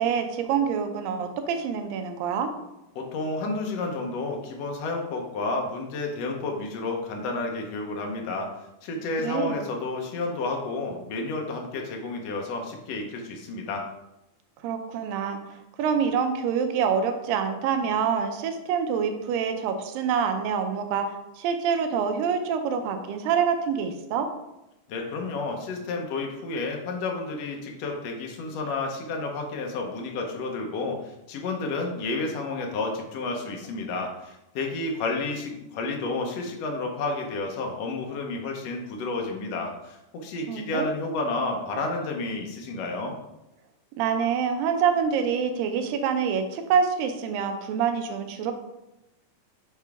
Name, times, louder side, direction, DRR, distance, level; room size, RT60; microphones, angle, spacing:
voice 1, 0.0-2.5 9.2-9.6 14.6-15.4 15.8-24.3 40.5-40.9 44.0-48.5, right 7 dB, 90° right, 6 dB, 2.4 m, -26 dB
voice 2, 2.9-8.5 8.8-13.8 24.9-43.2, left 3 dB, 75° left, 1 dB, 1.5 m, -31 dB
6.9 x 4.5 x 3.5 m, 0.92 s
omnidirectional pair, 3.9 m